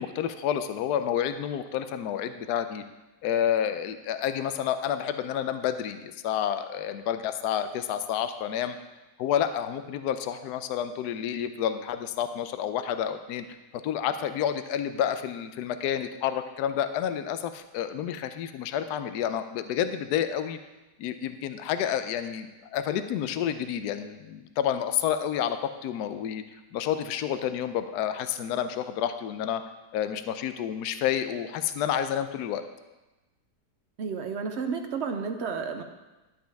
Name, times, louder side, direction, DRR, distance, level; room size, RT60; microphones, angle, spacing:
voice 1, 0.0-2.8 3.2-8.8 9.2-13.4 13.8-20.6 21.0-26.4 26.7-29.6 29.9-32.6, left 9 dB, 75° left, 10 dB, 1.1 m, -29 dB
voice 2, 34.0-35.8, right 5 dB, 60° right, 6 dB, 0.7 m, -31 dB
11.5 x 7.7 x 3.4 m, 1.1 s
omnidirectional pair, 1.8 m